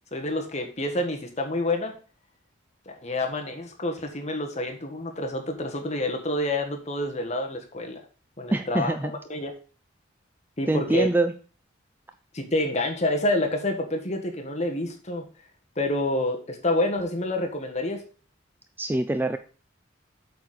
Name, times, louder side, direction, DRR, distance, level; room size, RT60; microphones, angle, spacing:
voice 1, 0.1-1.9 2.8-8.0 8.4-9.5 10.6-11.1 12.3-15.3 15.8-18.0, left 1 dB, 35° left, 4 dB, 1.4 m, -28 dB
voice 2, 8.5-9.1 10.7-11.3 18.8-19.4, right 2 dB, 10° right, 8 dB, 0.3 m, -24 dB
8.2 x 4.2 x 6.5 m, 0.39 s
head